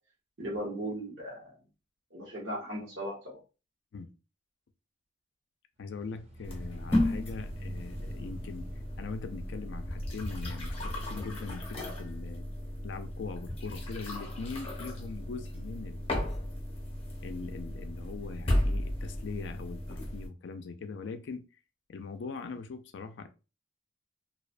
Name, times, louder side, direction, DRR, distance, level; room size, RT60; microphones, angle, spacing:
voice 1, 0.4-1.5 2.1-3.4, right 1 dB, 65° right, 1.0 m, -37 dB
voice 2, 5.8-8.7 9.0-12.5 12.8-16.2 17.2-21.4 21.9-23.3, left 4 dB, 65° left, 0.4 m, -41 dB
sound 1, 5.8-10.8, right 1 dB, 35° right, 0.4 m, -50 dB
sound 2, 6.4-20.3, left 1 dB, 30° left, 0.7 m, -34 dB
2.3 x 2.1 x 2.4 m
head